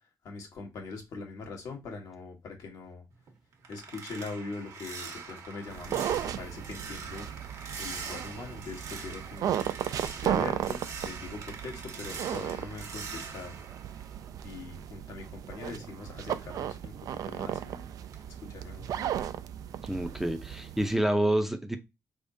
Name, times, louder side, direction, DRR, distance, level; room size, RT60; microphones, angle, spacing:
voice 1, 0.2-3.0 3.7-7.3 7.8-9.6 10.1-13.5 14.4-16.9 17.2-17.9 18.5-18.9, left 4 dB, 80° left, 1.3 m, -42 dB
sound 1, 3.1-14.7 15.1-17.7 18.1-18.4 18.8-19.0, right 5 dB, 65° right, 1.0 m, -44 dB
sound 2, 5.7-20.9, right 10 dB, 80° right, 0.3 m, -35 dB
voice 2, 19.8-21.8, right 1 dB, 5° right, 0.5 m, -28 dB
4.6 x 3.5 x 2.6 m
cardioid pair, 135°, 6 cm